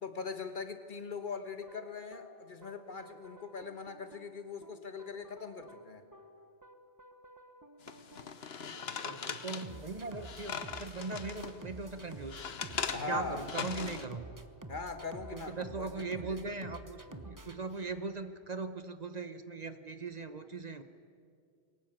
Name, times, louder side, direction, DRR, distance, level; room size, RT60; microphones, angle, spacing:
voice 1, 0.0-6.0 12.9-13.5 14.7-16.4 17.1-17.2, left 4 dB, 50° left, 8 dB, 1.5 m, -41 dB
sound 1, 1.6-18.3, right 2 dB, 20° right, 1.0 m, -51 dB
sound 2, 7.8-11.6 12.0-14.1, left 6 dB, 70° left, 1.3 m, -40 dB
voice 2, 9.1-12.5 13.1-14.3 15.3-20.8, right 3 dB, 40° right, 10 dB, 1.0 m, -39 dB
22.5 x 18.5 x 9.0 m, 2.3 s
omnidirectional pair, 1.1 m